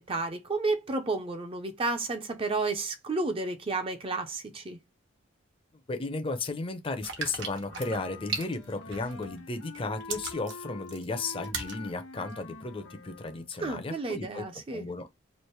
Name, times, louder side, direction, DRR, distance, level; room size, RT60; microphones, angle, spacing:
voice 1, 0.0-4.8 13.6-14.9, right 3 dB, 30° right, 0.5 m, -31 dB
voice 2, 5.7-14.5 14.7-15.1, left 3 dB, 25° left, 0.5 m, -34 dB
sound 1, 7.0-9.4 9.7-11.8 12.3-12.4, right 5 dB, 70° right, 0.9 m, -37 dB
Wind instrument woodwind instrument, 7.6-13.5, left 3 dB, 85° left, 0.9 m, -46 dB
3.2 x 2.5 x 4.4 m
head